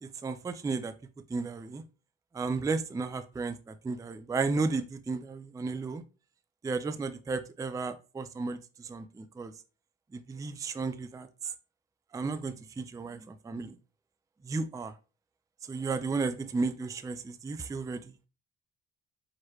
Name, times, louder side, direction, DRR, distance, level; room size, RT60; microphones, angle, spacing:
voice 1, 0.2-0.9 1.3-1.8 2.3-3.6 3.8-6.0 6.6-9.5 10.1-11.3 12.1-13.7 14.4-14.9 15.7-18.0, right 4 dB, 10° right, 0.3 m, -33 dB
4.6 x 3.0 x 3.1 m
cardioid pair, 90°, 30 cm